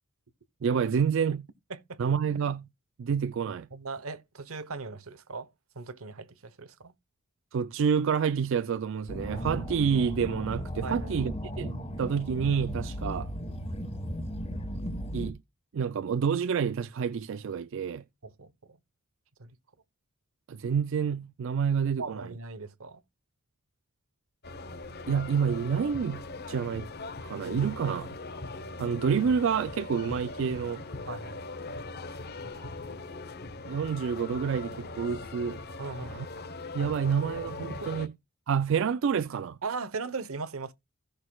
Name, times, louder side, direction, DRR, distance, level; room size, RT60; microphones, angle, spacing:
voice 1, 0.6-1.5 2.0-2.7 3.0-3.7 7.5-13.3 15.1-15.4 15.7-18.0 20.5-22.3 25.1-26.9 27.2-28.2 28.8-30.8 33.7-35.6 36.1-36.3 36.7-38.1 38.5-39.6, right 6 dB, 65° right, 0.4 m, -28 dB
voice 2, 1.7-2.0 3.7-5.5 5.7-6.9 10.8-11.1 18.2-18.8 19.4-19.5 22.0-23.0 28.6-28.8 31.1-31.5 32.4-32.9 35.8-36.3 37.7-37.9 39.6-40.7, right 4 dB, 90° right, 1.0 m, -39 dB
sound 1, 9.1-15.3, equal, 30° left, 1.3 m, -35 dB
sound 2, 24.4-38.1, left 3 dB, 50° left, 0.9 m, -40 dB
16.0 x 6.5 x 2.3 m
head